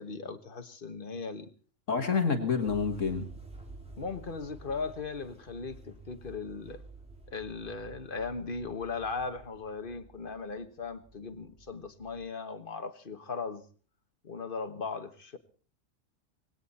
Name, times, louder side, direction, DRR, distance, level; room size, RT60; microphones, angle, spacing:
voice 1, 0.0-1.5 4.0-6.8 7.3-13.6 14.2-15.4, left 4 dB, 40° left, 1.4 m, -38 dB
voice 2, 1.9-3.3, left 5 dB, 65° left, 2.1 m, -28 dB
sound 1, 2.6-12.2, right 3 dB, 5° right, 3.4 m, -51 dB
19.5 x 16.5 x 4.2 m
omnidirectional pair, 1.4 m